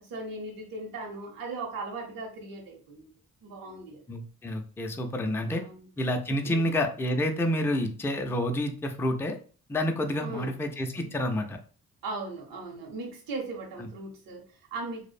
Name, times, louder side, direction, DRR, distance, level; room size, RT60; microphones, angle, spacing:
voice 1, 0.0-3.1 3.4-4.0 5.4-5.9 6.4-6.7 10.2-10.5 11.0-11.2 12.0-15.1, right 3 dB, 70° right, 0 dB, 0.8 m, -38 dB
voice 2, 4.1-5.6 6.0-9.4 9.7-11.6 13.8-13.9, left 1 dB, 5° left, 4 dB, 0.3 m, -29 dB
2.5 x 2.0 x 2.4 m, 0.41 s
supercardioid pair, 50°, 35 cm